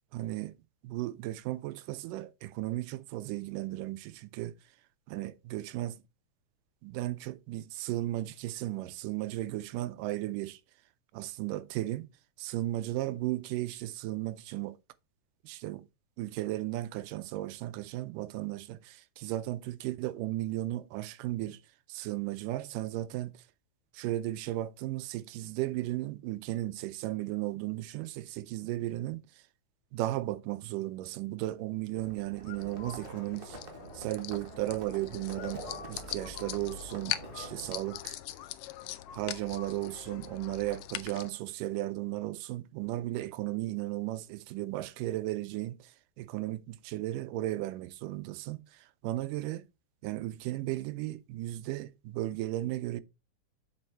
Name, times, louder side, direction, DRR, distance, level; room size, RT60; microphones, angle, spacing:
voice 1, 0.1-0.5 0.8-4.5 5.1-6.0 6.8-10.6 11.1-12.1 12.4-14.8 15.4-15.8 16.2-21.6 21.9-23.4 23.9-29.2 29.9-33.6 33.9-38.2 39.1-49.7 50.0-53.0, right 16 dB, 80° right, 2.2 m, -35 dB
Livestock farm animals working animals, 32.0-37.7, right 3 dB, 45° right, 0.7 m, -47 dB
sound 1, 32.4-33.0 35.3-38.0 38.4-38.5 38.8-39.7, left 9 dB, 65° left, 1.5 m, -49 dB
sound 2, 32.6-41.3, left 14 dB, 90° left, 1.6 m, -42 dB
7.5 x 5.4 x 4.4 m
omnidirectional pair, 3.8 m